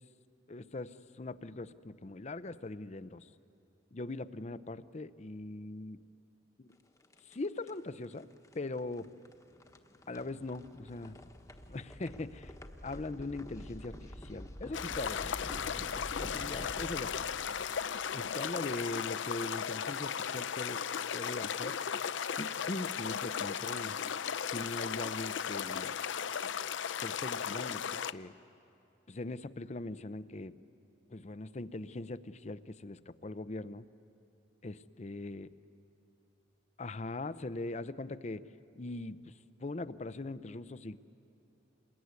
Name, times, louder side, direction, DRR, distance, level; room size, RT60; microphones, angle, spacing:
voice 1, 0.5-3.3 3.9-6.0 6.6-6.8 7.2-8.3 8.5-9.1 10.1-11.2 11.7-12.5 12.8-15.3 16.2-17.5 18.1-20.8 21.1-21.8 22.4-24.0 24.5-26.0 27.0-27.9 28.1-28.3 29.1-30.5 31.1-33.9 34.6-35.5 36.8-38.5 38.8-39.3 39.6-41.0, left 2 dB, 40° left, 15 dB, 0.6 m, -41 dB
sound 1, 6.7-18.8, equal, 20° left, 1.2 m, -49 dB
sound 2, 14.7-28.1, left 7 dB, 90° left, 0.6 m, -36 dB
27.0 x 21.0 x 9.6 m, 2.8 s
head